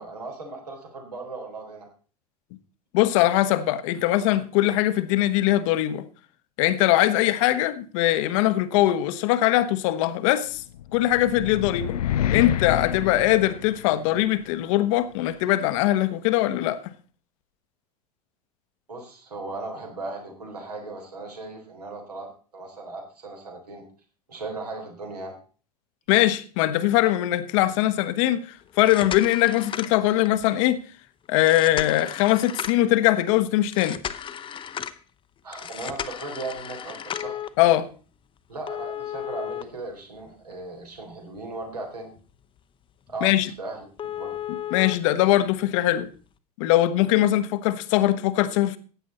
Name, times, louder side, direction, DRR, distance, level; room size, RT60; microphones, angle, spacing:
voice 1, 0.0-1.9 18.9-23.9 24.3-25.4 35.4-37.5 38.5-42.1 43.1-43.8 44.2-44.4, right 3 dB, 75° right, 4.0 m, -37 dB
voice 2, 2.9-6.0 6.6-10.6 10.9-11.9 12.3-16.9 26.1-30.8 31.3-34.0 37.6-37.9 43.2-43.5 44.5-46.1 46.6-48.8, left 14 dB, 50° left, 1.0 m, -21 dB
sound 1, 10.7-14.2, left 11 dB, 65° left, 0.5 m, -28 dB
sound 2, 28.7-30.4 31.4-32.9 33.7-35.0 35.5-37.5 38.7-40.5 41.0-41.1 41.6-41.7 42.2-42.3 42.6-42.7 43.1-43.2 43.5-43.6 44.0-44.9 46.0-46.1, left 9 dB, 25° left, 0.8 m, -34 dB
15.0 x 9.5 x 4.2 m
figure-of-eight pair, 80°, 20 cm